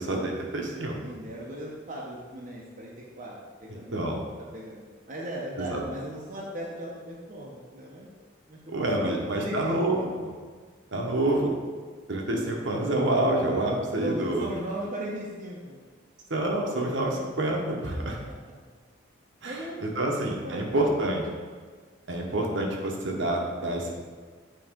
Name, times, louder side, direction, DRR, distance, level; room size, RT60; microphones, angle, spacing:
voice 1, 0.0-1.0 3.9-4.2 5.6-5.8 8.7-10.3 10.9-11.5 12.1-14.5 16.3-18.2 19.4-21.2 22.1-24.0, right 1 dB, 65° right, 0 dB, 0.9 m, -27 dB
voice 2, 1.0-3.4 3.6-3.9 4.5-8.1 8.5-10.1 14.0-15.8 18.2-18.3 19.4-20.8, right 1 dB, 40° right, -4 dB, 0.7 m, -38 dB
8.6 x 3.1 x 3.7 m, 1.5 s
head